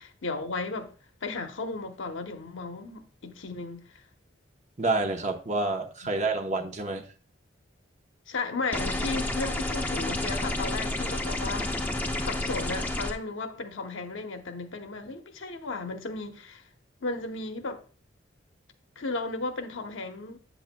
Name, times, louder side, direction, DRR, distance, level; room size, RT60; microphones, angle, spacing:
voice 1, 0.2-0.9 1.2-4.0 6.0-6.1 8.3-11.8 12.2-16.6 17.0-17.8 19.0-20.4, left 3 dB, 75° left, 0.9 m, -35 dB
voice 2, 4.8-7.0, right 2 dB, 35° right, 0.8 m, -28 dB
sound 1, 8.7-13.1, left 1 dB, 10° left, 0.5 m, -30 dB
8.7 x 7.1 x 2.2 m
head